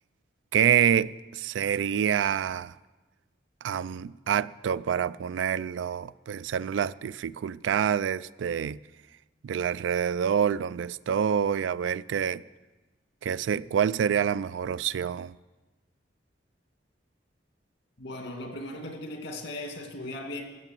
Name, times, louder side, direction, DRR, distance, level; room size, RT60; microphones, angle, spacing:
voice 1, 0.5-2.7 3.6-8.8 9.4-12.4 13.2-15.4, right 8 dB, 90° right, 0.3 m, -27 dB
voice 2, 18.0-20.4, left 1 dB, 75° left, 2.2 m, -37 dB
15.0 x 6.9 x 7.4 m
head